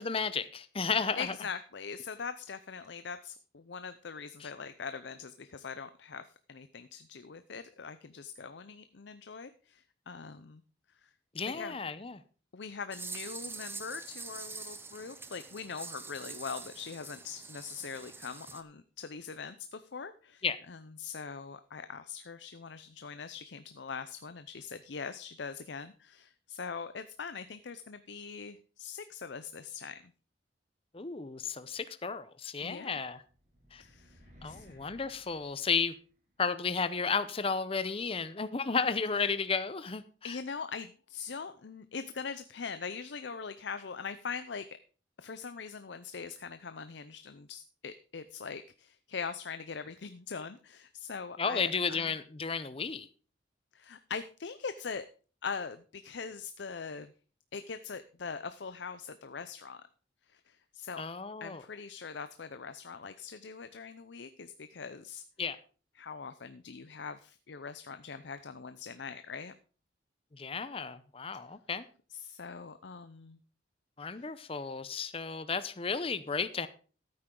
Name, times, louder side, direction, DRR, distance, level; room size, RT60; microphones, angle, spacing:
voice 1, 0.0-1.3 4.4-4.5 11.3-12.2 20.4-20.6 30.9-33.2 33.7-33.8 34.4-35.9 36.4-40.0 51.4-53.1 61.0-61.6 65.4-65.6 70.3-71.8 74.0-76.7, left 5 dB, 30° left, 0.7 m, -33 dB
voice 2, 1.2-10.6 11.0-11.1 11.5-11.8 12.5-30.1 32.6-33.0 33.8-34.8 40.2-44.7 45.2-52.1 53.7-55.1 55.4-57.1 57.5-59.8 60.3-61.0 61.4-65.2 66.0-69.5 72.1-73.4 74.2-74.3, left 5 dB, 75° left, 0.6 m, -42 dB
sound 1, 12.9-18.6, right 4 dB, 10° right, 0.8 m, -45 dB
sound 2, 33.2-36.4, equal, 40° right, 3.1 m, -59 dB
14.5 x 8.7 x 3.8 m
head